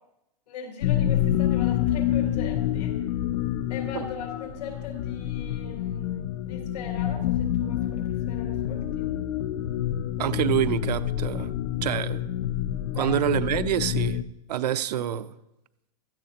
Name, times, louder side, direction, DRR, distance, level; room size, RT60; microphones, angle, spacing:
voice 1, 0.5-3.0 3.7-9.1 12.9-13.1, left 5 dB, 75° left, 1 dB, 3.8 m, -40 dB
sound 1, 0.8-14.2, left 11 dB, 45° left, 0.6 m, -27 dB
voice 2, 10.2-11.5 11.8-12.2 13.0-14.2 14.5-15.3, right 11 dB, 75° right, 13 dB, 0.7 m, -26 dB
16.0 x 14.0 x 3.0 m, 0.89 s
supercardioid pair, 170°, 21 cm